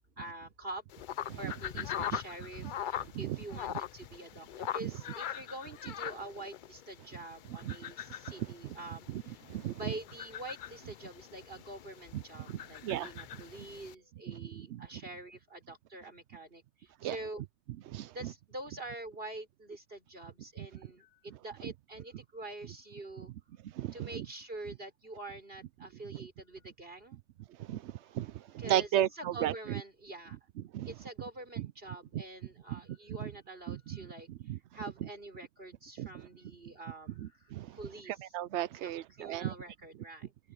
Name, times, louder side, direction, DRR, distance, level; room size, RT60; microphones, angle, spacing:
voice 1, 0.1-0.8 1.4-9.4 9.8-17.4 18.1-23.3 23.9-27.2 28.2-30.4 30.9-34.3 34.7-38.4 38.8-40.3, right 2 dB, 45° right, 6.0 m, -46 dB
sound 1, 0.9-13.9, left 10 dB, 70° left, 0.4 m, -42 dB
voice 2, 9.5-9.8 12.1-12.2 12.5-13.1 14.3-14.9 17.0-17.2 17.9-18.3 20.6-20.7 21.6-21.7 23.6-24.3 27.6-29.5 30.7-30.9 31.6-31.7 32.1-32.2 32.7-32.8 33.2-33.3 33.7-34.0 34.5-34.6 36.0-36.1 37.2-37.8 38.1-39.5, right 12 dB, 65° right, 0.8 m, -35 dB
open air
omnidirectional pair, 1.4 m